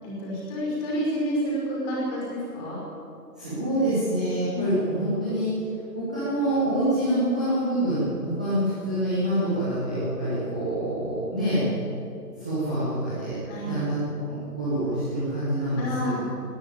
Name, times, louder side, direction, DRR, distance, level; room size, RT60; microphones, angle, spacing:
voice 1, 0.0-2.8 4.5-4.7 13.5-13.8 15.8-16.2, equal, 15° left, -4 dB, 5.2 m, -29 dB
voice 2, 3.4-5.5 5.9-11.7 12.4-13.4 13.6-14.0 14.3-16.2, right 1 dB, 5° right, -13 dB, 0.9 m, -26 dB
20.0 x 15.5 x 8.8 m, 2.8 s
hypercardioid pair, 175°, 49 cm